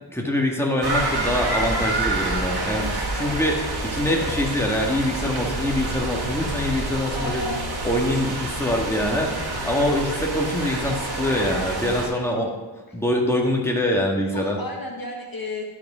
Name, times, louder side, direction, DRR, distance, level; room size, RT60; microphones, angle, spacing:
voice 1, 0.1-7.5 7.8-12.5 12.9-14.6, left 1 dB, 5° left, -1 dB, 1.9 m, -24 dB
sound 1, 0.8-12.1, right 2 dB, 60° right, 1.8 m, -28 dB
voice 2, 7.1-7.6 12.9-13.0 14.3-15.6, left 2 dB, 50° left, 0 dB, 1.4 m, -32 dB
12.0 x 5.1 x 5.1 m, 1.2 s
cardioid pair, 45°, 45 cm